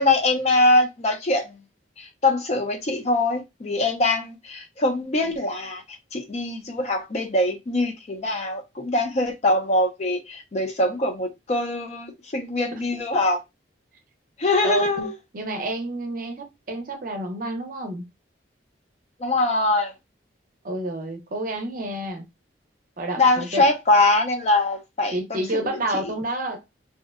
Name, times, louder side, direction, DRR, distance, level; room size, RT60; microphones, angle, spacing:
voice 1, 0.0-1.5 2.0-5.8 6.1-13.4 14.4-15.1 19.2-19.9 23.2-25.7, left 2 dB, 35° left, 0.4 m, -23 dB
voice 2, 14.6-15.1 15.3-18.1 20.6-22.3 23.0-23.6 25.1-26.6, right 1 dB, 45° right, 0.6 m, -29 dB
2.7 x 2.1 x 2.3 m
head